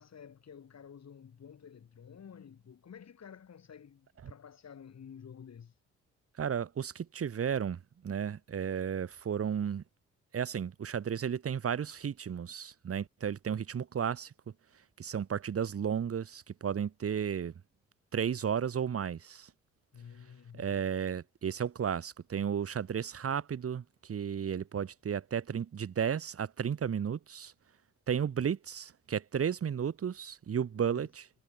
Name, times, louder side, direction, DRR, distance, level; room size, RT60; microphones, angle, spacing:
voice 1, 0.0-5.8 19.9-20.9 30.8-31.1, left 7 dB, 45° left, 4.7 m, -51 dB
voice 2, 6.4-9.8 10.3-14.3 15.0-17.5 18.1-19.5 20.5-27.5 28.1-31.3, right 8 dB, 40° right, 1.6 m, -33 dB
figure-of-eight pair, 40°, 35 cm